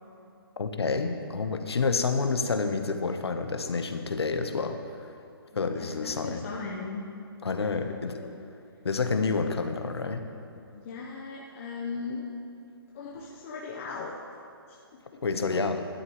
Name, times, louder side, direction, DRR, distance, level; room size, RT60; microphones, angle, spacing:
voice 1, 0.6-5.2 5.5-6.4 7.4-8.3 8.8-10.3 15.2-15.9, left 4 dB, 90° left, 7 dB, 1.0 m, -29 dB
voice 2, 5.5-7.1 7.6-8.3 10.7-12.2 12.9-14.2 14.7-14.8 15.1-15.2, left 4 dB, 35° left, -3 dB, 0.9 m, -38 dB
12.5 x 11.5 x 3.1 m, 2.5 s
hypercardioid pair, 160°, 13 cm